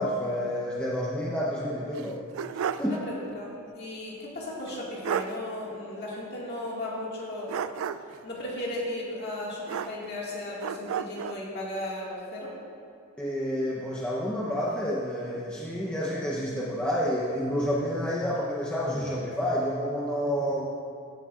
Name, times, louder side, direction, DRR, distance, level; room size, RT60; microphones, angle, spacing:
voice 1, 0.0-2.2 2.8-3.0 13.2-20.7, equal, 5° left, -6 dB, 0.7 m, -29 dB
sound 1, 1.9-3.0 3.3-3.4 4.7-4.8 5.0-5.4 7.5-8.2 9.7-10.3 10.6-11.4, right 8 dB, 70° right, 0.3 m, -32 dB
voice 2, 2.8-3.5 3.7-7.7 8.2-12.5, left 1 dB, 55° left, -5 dB, 1.9 m, -35 dB
15.0 x 7.8 x 2.4 m, 2.4 s
head